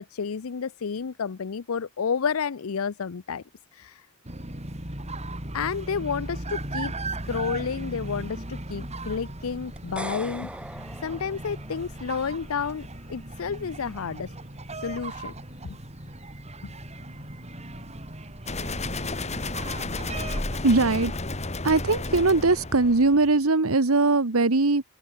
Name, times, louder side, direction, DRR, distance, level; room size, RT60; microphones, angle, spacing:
voice 1, 0.0-3.4 3.7-4.1 5.5-10.8 11.0-14.3 14.7-15.3 15.6-15.8 16.6-16.7, left 6 dB, 75° left, 0.6 m, -31 dB
sound 1, 4.2-20.6, right 2 dB, 30° right, 4.7 m, -37 dB
sound 2, 9.8-12.1, right 1 dB, 5° right, 0.9 m, -39 dB
sound 3, 18.5-23.4, left 2 dB, 30° left, 2.3 m, -32 dB
voice 2, 20.6-21.2 21.6-24.8, right 3 dB, 75° right, 1.3 m, -21 dB
open air
head